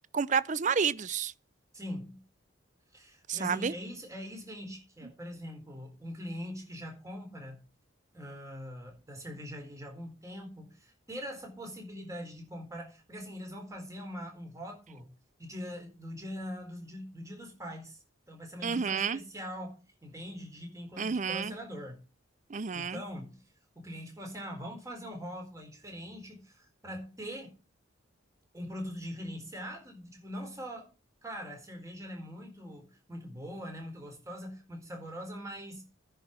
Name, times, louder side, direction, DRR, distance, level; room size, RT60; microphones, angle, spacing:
voice 1, 0.1-1.3 3.3-3.7 18.6-19.2 21.0-21.5 22.5-23.0, right 6 dB, 40° right, 0.5 m, -30 dB
voice 2, 1.7-2.2 2.9-7.6 8.1-15.1 15.4-18.0 18.3-22.0 22.7-23.4 23.8-27.6 28.5-30.9 31.2-35.8, equal, 15° right, 4.1 m, -42 dB
10.0 x 5.6 x 8.0 m
head